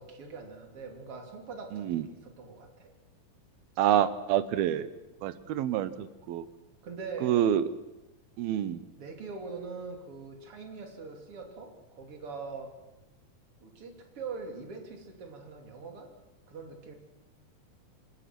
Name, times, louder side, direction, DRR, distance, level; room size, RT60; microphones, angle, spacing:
voice 1, 0.0-2.9 6.8-7.3 9.0-12.7 13.6-16.1 16.5-16.9, right 4 dB, 40° right, 3 dB, 3.6 m, -42 dB
voice 2, 1.7-2.0 3.8-4.9 5.2-6.4 7.2-7.6 8.4-8.8, right 10 dB, 80° right, 14 dB, 2.9 m, -27 dB
27.0 x 20.5 x 6.1 m, 0.99 s
omnidirectional pair, 4.3 m